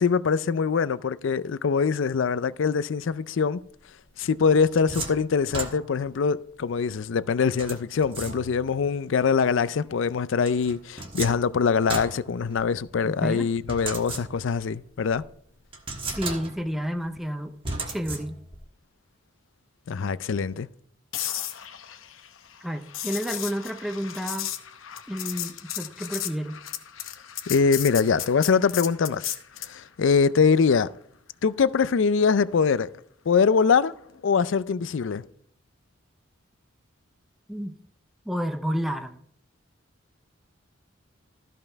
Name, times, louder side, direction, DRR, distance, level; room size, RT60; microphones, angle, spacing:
voice 1, 0.0-3.6 4.2-15.2 19.9-20.7 27.5-29.3 29.6-30.9 31.4-32.9 33.3-33.9 34.2-35.2, left 5 dB, 70° left, 0.4 m, -23 dB
sound 1, 4.2-6.2 7.6-8.8 10.4-12.9 13.7-14.7 15.1-15.2 15.7-16.8 17.6-18.6, right 3 dB, 30° right, 1.4 m, -36 dB
voice 2, 13.0-13.5 16.1-17.5 17.9-18.3 22.6-24.5 25.1-26.6 37.5-37.8 38.3-39.2, equal, ahead, 0.5 m, -30 dB
sound 2, 21.1-29.8 34.0-34.2, left 12 dB, 85° left, 0.8 m, -35 dB
13.5 x 5.5 x 4.5 m
head